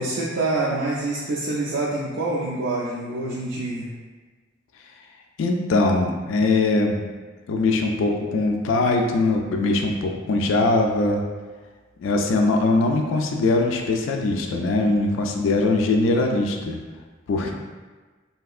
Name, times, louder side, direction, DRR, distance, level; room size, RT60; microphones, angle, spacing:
voice 1, 0.0-3.9, right 2 dB, 65° right, -5 dB, 0.4 m, -26 dB
voice 2, 5.4-7.0 7.5-11.2 12.0-16.8 17.3-17.6, left 2 dB, 85° left, 2 dB, 0.3 m, -21 dB
3.2 x 2.7 x 2.4 m, 1.4 s
head